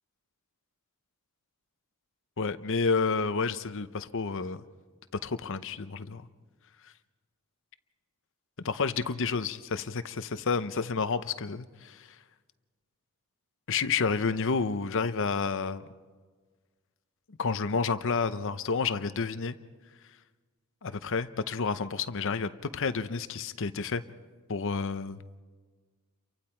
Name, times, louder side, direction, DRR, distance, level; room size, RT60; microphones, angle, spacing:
voice 1, 2.4-4.6 5.2-6.3 8.6-12.1 13.7-15.8 17.3-19.6 20.8-24.0 24.5-25.2, left 5 dB, 60° left, 12 dB, 0.8 m, -30 dB
29.5 x 24.0 x 4.5 m, 1.5 s
head